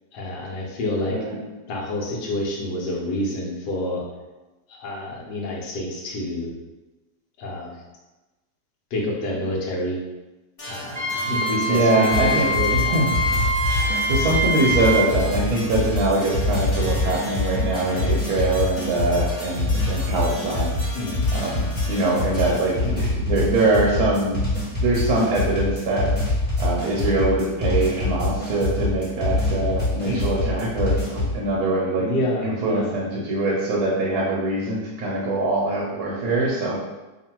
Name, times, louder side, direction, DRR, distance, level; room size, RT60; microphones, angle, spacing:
voice 1, 0.1-1.2 1.7-4.0 4.7-6.5 7.4-7.7 8.9-10.0 10.7-13.0 15.5-15.7 17.8-18.1 20.9-21.2 22.8-23.0 30.0-30.3 32.0-33.0, left 1 dB, 80° left, -2 dB, 1.4 m, -28 dB
sound 1, 10.6-23.1, left 1 dB, 45° left, 0.4 m, -38 dB
Wind instrument woodwind instrument, 11.0-15.1, equal, 55° right, 0.5 m, -24 dB
voice 2, 11.7-13.1 14.1-20.7 21.3-24.4 24.8-26.1 26.6-32.1 32.4-36.8, right 2 dB, 70° right, -3 dB, 1.1 m, -23 dB
sound 2, 12.1-31.4, left 2 dB, 10° left, 0.7 m, -25 dB
3.0 x 2.5 x 4.3 m, 1.1 s
omnidirectional pair, 1.8 m